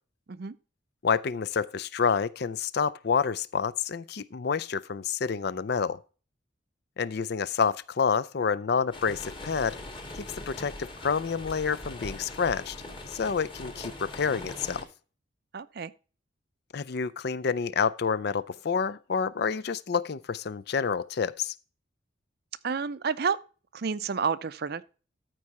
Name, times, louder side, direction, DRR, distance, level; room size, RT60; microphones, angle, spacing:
voice 1, 1.0-6.0 7.0-9.8 10.1-12.8 13.1-14.8 16.7-21.5, left 6 dB, 55° left, 0.5 m, -28 dB
sound 1, 8.9-14.8, left 2 dB, 25° left, 1.5 m, -41 dB
voice 2, 15.5-15.9 22.6-23.4 23.7-24.8, right 5 dB, 55° right, 0.5 m, -30 dB
13.5 x 4.7 x 4.1 m
head